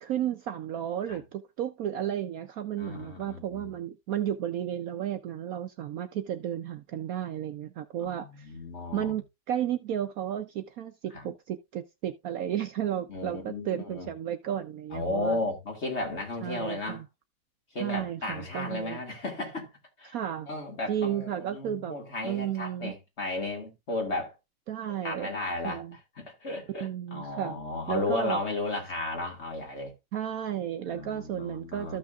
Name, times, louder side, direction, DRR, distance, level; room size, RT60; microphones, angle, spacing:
voice 1, 0.0-8.5 8.9-15.4 16.4-17.0 17.8-19.0 20.1-20.5 20.9-21.9 22.2-22.9 24.7-25.3 25.6-26.0 26.7-27.6 27.9-28.4 30.1-32.0, right 10 dB, 65° right, 0.9 m, -33 dB
voice 2, 2.8-3.7 8.0-9.2 11.1-11.3 13.1-14.1 14.9-17.0 17.7-19.7 20.0-20.2 20.5-24.3 25.0-29.9 30.9-32.0, left 2 dB, 40° left, 2.3 m, -34 dB
14.0 x 5.9 x 2.3 m
omnidirectional pair, 1.9 m